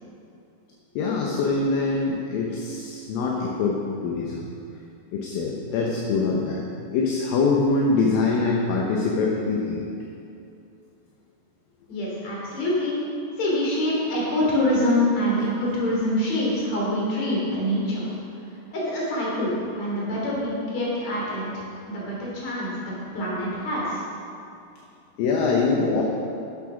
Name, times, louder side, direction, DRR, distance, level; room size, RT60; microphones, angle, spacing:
voice 1, 1.0-4.5 5.1-9.9 25.2-26.0, left 4 dB, 75° left, -1 dB, 2.6 m, -24 dB
voice 2, 11.9-13.0 13.4-18.1 18.7-22.7 23.1-24.0, left 1 dB, 50° left, -5 dB, 3.8 m, -25 dB
11.5 x 7.5 x 6.0 m, 2.6 s
omnidirectional pair, 4.4 m